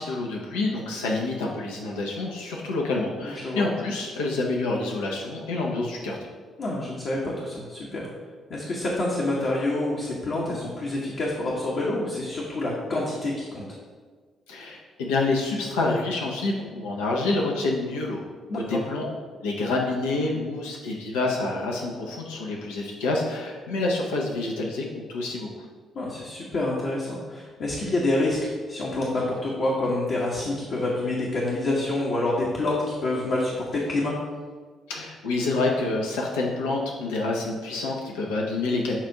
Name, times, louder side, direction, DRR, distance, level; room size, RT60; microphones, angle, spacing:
voice 1, 0.0-6.2 14.5-18.2 18.5-19.1 19.4-25.5 34.9-39.0, left 2 dB, 70° left, -1 dB, 0.7 m, -27 dB
voice 2, 3.2-3.6 6.6-8.1 8.5-13.6 18.5-18.8 25.9-34.1, left 2 dB, 50° left, -4 dB, 1.0 m, -27 dB
7.3 x 2.6 x 5.7 m, 1.5 s
figure-of-eight pair, 40°, 0 cm